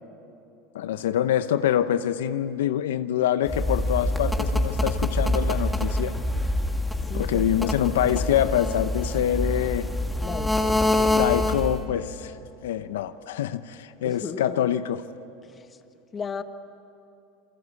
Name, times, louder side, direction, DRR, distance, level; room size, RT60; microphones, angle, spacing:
voice 1, 0.7-6.2 7.1-9.9 10.9-12.3 12.6-15.0, left 10 dB, 90° left, 12 dB, 0.8 m, -25 dB
sound 1, 3.5-11.8, left 1 dB, 5° left, 2.2 m, -25 dB
voice 2, 7.1-8.0 10.2-10.8 14.0-14.7 15.5-15.7 16.1-16.4, left 6 dB, 25° left, 9 dB, 1.5 m, -36 dB
28.5 x 23.5 x 8.4 m, 2.7 s
supercardioid pair, 115°, 0 cm